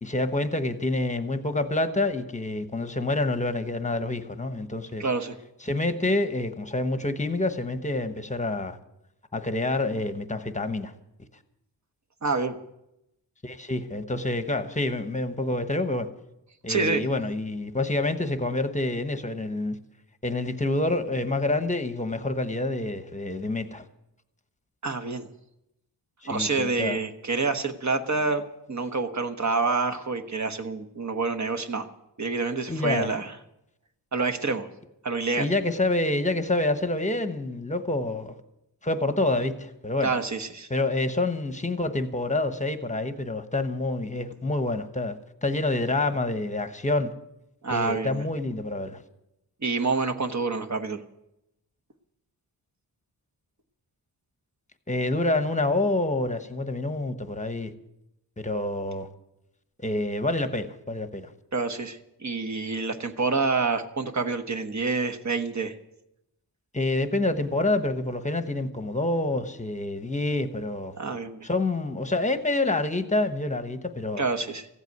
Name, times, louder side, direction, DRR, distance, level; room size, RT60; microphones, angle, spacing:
voice 1, 0.0-5.1 5.6-8.8 9.3-10.9 13.4-16.1 16.6-19.7 20.2-23.8 26.2-27.0 32.7-33.1 35.4-38.3 38.8-40.1 40.7-47.1 47.7-49.0 54.9-57.7 58.4-59.1 59.8-61.3 66.7-70.9 71.4-74.2, left 2 dB, 15° left, 1.0 m, -27 dB
voice 2, 5.0-5.3 12.2-12.6 16.7-17.0 24.8-25.3 26.3-28.4 28.7-31.9 32.2-33.3 34.1-34.7 35.0-35.5 40.0-40.7 47.6-48.2 49.6-51.0 61.5-65.7 71.0-71.5 74.2-74.7, right 4 dB, 40° right, 1.2 m, -27 dB
15.5 x 8.2 x 9.4 m
wide cardioid pair, 130°, 44 cm